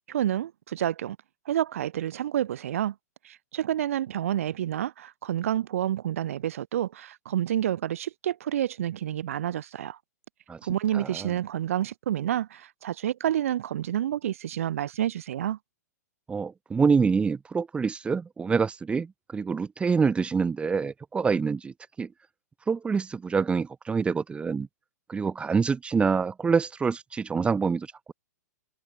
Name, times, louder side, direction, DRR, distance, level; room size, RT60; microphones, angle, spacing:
voice 1, 0.1-1.2 1.5-2.9 3.2-10.0 10.6-15.6, right 11 dB, 55° right, 4.3 m, -29 dB
voice 2, 10.9-11.3 16.3-22.1 22.7-24.7 25.1-28.1, right 5 dB, 10° right, 6.7 m, -26 dB
figure-of-eight pair, 105°, 9 cm